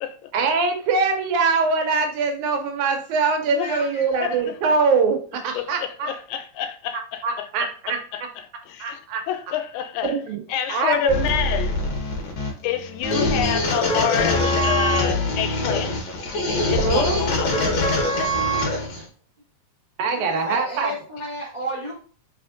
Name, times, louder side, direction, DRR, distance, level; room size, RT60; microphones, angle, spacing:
voice 1, 0.3-6.1 7.2-8.0 8.8-9.2 10.0-10.4 10.7-11.2 16.8-17.2 19.0-19.1 20.0-20.9, right 4 dB, 80° right, 2.0 m, -23 dB
voice 2, 3.6-4.2 20.1-22.0, right 1 dB, 35° right, 0.7 m, -32 dB
voice 3, 4.2-4.5 5.5-7.5 7.9-9.0 9.3-10.2 10.5-11.8 12.6-15.9 16.7-17.6 18.2-18.3, left 10 dB, 85° left, 2.0 m, -28 dB
sound 1, 11.1-19.0, left 1 dB, 70° left, 1.1 m, -23 dB
4.2 x 3.4 x 2.5 m
omnidirectional pair, 3.4 m